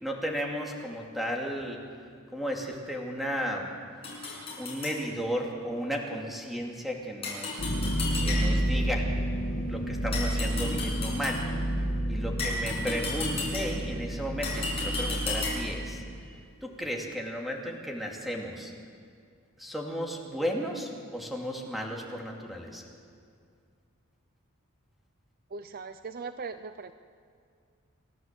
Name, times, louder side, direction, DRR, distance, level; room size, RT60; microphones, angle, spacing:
voice 1, 0.0-1.8 2.3-3.7 4.6-7.6 8.2-9.0 9.7-11.4 12.1-16.0 16.6-18.7 19.6-22.8, equal, ahead, -1 dB, 2.5 m, -34 dB
sound 1, 4.0-5.0 7.2-8.8 10.1-11.5 12.4-13.9 14.4-15.8, left 3 dB, 25° left, 7.0 m, -34 dB
sound 2, 7.6-16.2, right 1 dB, 80° left, 2.9 m, -30 dB
voice 2, 25.5-26.9, right 4 dB, 45° right, 10 dB, 0.5 m, -39 dB
29.0 x 12.5 x 7.5 m, 2.2 s
head